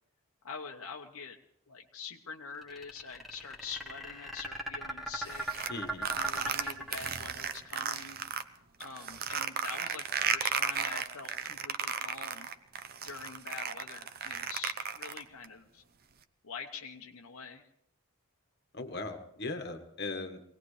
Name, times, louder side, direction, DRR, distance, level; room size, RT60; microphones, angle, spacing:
voice 1, 0.4-1.4 1.7-5.7 6.2-8.2 8.8-12.5 13.0-15.8 16.4-17.7, left 5 dB, 75° left, 1 dB, 1.0 m, -45 dB
sound 1, 2.6-7.7, right 2 dB, ahead, 1.4 m, -38 dB
sound 2, 5.3-8.4 8.8-15.5, right 7 dB, 45° right, 0.7 m, -34 dB
voice 2, 5.7-6.1 18.7-20.4, left 3 dB, 45° left, 5 dB, 1.5 m, -38 dB
24.0 x 18.5 x 3.3 m, 0.76 s
head